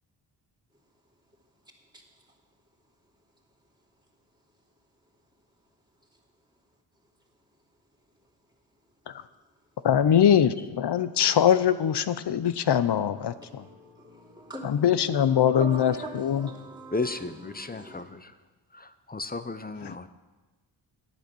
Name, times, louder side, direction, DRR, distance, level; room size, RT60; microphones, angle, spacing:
voice 1, 9.8-13.6 14.6-16.5 19.9-20.0, left 9 dB, 55° left, 13 dB, 0.7 m, -22 dB
voice 2, 13.2-17.0 17.5-18.0, right 2 dB, 10° right, 0 dB, 2.8 m, -42 dB
voice 3, 16.9-18.3 18.7-20.1, left 3 dB, 20° left, 11 dB, 0.7 m, -34 dB
10.5 x 8.7 x 6.3 m, 1.2 s
cardioid pair, 55°, 48 cm